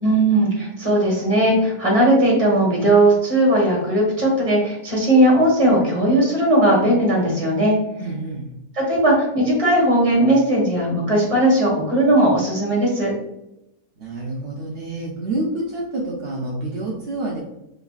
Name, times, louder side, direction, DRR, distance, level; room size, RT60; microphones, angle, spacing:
voice 1, 0.0-7.8 8.7-13.1, right 1 dB, 25° right, -3 dB, 1.2 m, -17 dB
voice 2, 8.0-8.5 14.0-17.4, right 2 dB, 65° right, -3 dB, 0.6 m, -28 dB
4.0 x 3.5 x 2.3 m, 0.86 s
omnidirectional pair, 1.7 m